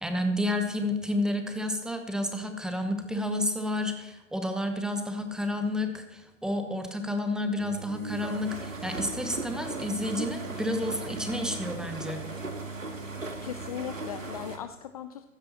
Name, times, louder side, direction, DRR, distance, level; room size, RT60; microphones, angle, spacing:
voice 1, 0.0-12.2, left 1 dB, ahead, 6 dB, 0.8 m, -30 dB
sound 1, 7.6-14.6, right 3 dB, 85° right, 1.8 m, -37 dB
voice 2, 13.4-15.3, left 10 dB, 30° left, 10 dB, 0.4 m, -38 dB
15.0 x 12.5 x 2.9 m, 1.1 s
figure-of-eight pair, 115°, 38 cm